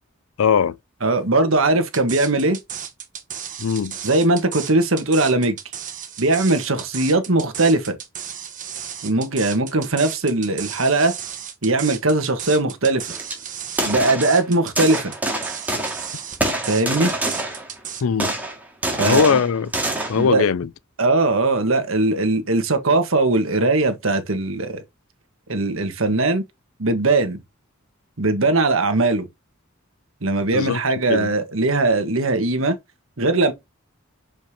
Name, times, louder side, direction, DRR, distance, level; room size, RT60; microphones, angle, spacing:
voice 1, 0.4-0.8 3.6-4.0 18.0-18.3 19.0-19.7 20.1-20.7 30.5-30.8 31.1-31.3, left 6 dB, 80° left, 0.4 m, -20 dB
voice 2, 1.0-2.6 4.0-5.6 6.2-8.0 9.0-11.1 11.6-13.1 13.8-15.1 16.7-17.1 19.0-19.4 20.1-20.5 21.0-24.8 25.5-26.4 26.8-27.4 28.2-29.3 30.2-32.8 33.2-33.5, right 2 dB, 70° right, 1.5 m, -20 dB
sound 1, 1.9-18.0, right 8 dB, 40° right, 1.2 m, -34 dB
sound 2, 13.1-13.3 13.7-14.4 14.8-16.1 16.4-17.8 18.2-20.3, right 1 dB, 10° right, 2.2 m, -25 dB
6.8 x 5.2 x 2.9 m
head